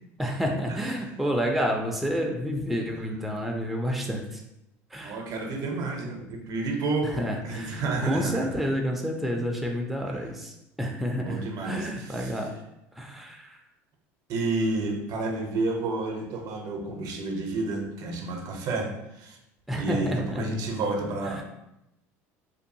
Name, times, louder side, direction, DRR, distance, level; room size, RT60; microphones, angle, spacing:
voice 1, 0.2-4.4 4.9-5.2 7.2-12.5 13.0-13.6 19.7-20.4 21.3-21.4, equal, ahead, 0 dB, 0.4 m, -29 dB
voice 2, 5.0-8.5 10.1-10.2 11.2-12.5 14.3-19.4 19.8-21.4, right 3 dB, 55° right, 2 dB, 0.6 m, -30 dB
2.6 x 2.3 x 2.6 m, 0.88 s
hypercardioid pair, 85°, 8 cm